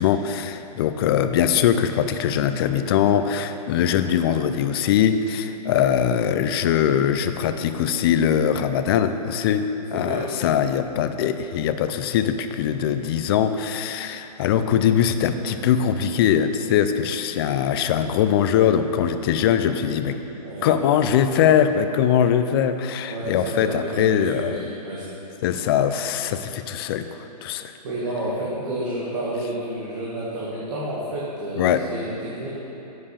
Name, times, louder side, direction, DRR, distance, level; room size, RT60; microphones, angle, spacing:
voice 1, 0.0-20.2 20.6-24.7 25.4-27.1 27.4-27.7 31.6-31.9, left 9 dB, 35° left, 10 dB, 0.4 m, -21 dB
voice 2, 9.9-10.3 20.4-20.8 23.1-25.1 27.8-32.5, right 1 dB, 50° right, -7 dB, 1.7 m, -30 dB
7.6 x 5.4 x 6.5 m, 2.9 s
hypercardioid pair, 135°, 21 cm